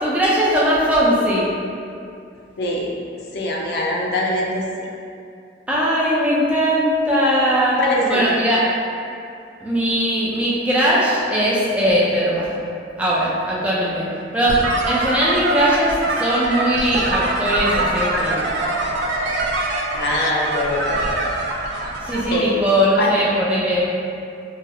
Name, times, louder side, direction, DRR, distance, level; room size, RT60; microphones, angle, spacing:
voice 1, 0.0-1.5 5.7-7.8 8.1-8.6 9.6-12.6 13.0-14.0 14.3-14.6 14.8-18.5 22.0-23.8, equal, 5° right, -7 dB, 0.4 m, -19 dB
voice 2, 2.6-2.9 3.3-4.6 7.8-8.2 19.9-21.1 22.3-22.6 23.0-23.1, left 1 dB, 60° left, -2 dB, 0.4 m, -22 dB
sound 1, 14.5-22.4, right 2 dB, 75° right, 0.4 m, -23 dB
3.8 x 2.0 x 2.6 m, 2.5 s
head